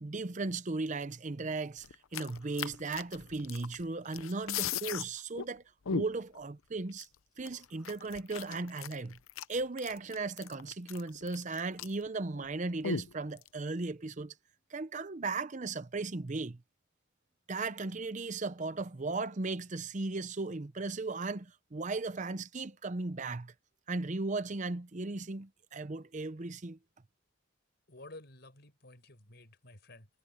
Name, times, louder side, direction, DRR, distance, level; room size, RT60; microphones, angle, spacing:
voice 1, 0.0-5.6 5.9-7.1 7.4-9.2 9.5-14.3 14.7-16.6 17.5-23.5 23.9-26.8, right 3 dB, 35° right, 0.7 m, -36 dB
sound 1, 1.8-3.8 4.1-5.0 5.4-5.5 5.9-6.4 7.0-7.1 7.4-12.1 12.3-12.5 12.8-13.5, left 6 dB, 90° left, 0.7 m, -37 dB
voice 2, 27.9-30.1, left 2 dB, 55° left, 5.6 m, -52 dB
head